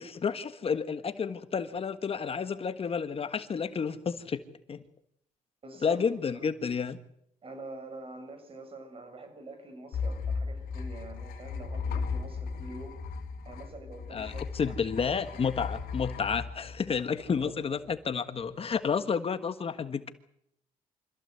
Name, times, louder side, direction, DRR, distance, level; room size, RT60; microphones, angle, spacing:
voice 1, 0.0-4.4 4.7-4.8 5.8-7.0 14.1-20.1, left 6 dB, 40° left, 1.5 m, -31 dB
voice 2, 5.6-6.1 7.4-13.0 13.4-14.9 17.5-17.6, right 2 dB, 40° right, 6.9 m, -45 dB
sound 1, 9.9-17.4, left 5 dB, 85° left, 2.9 m, -36 dB
25.5 x 15.5 x 8.1 m
cardioid pair, 80°, 15 cm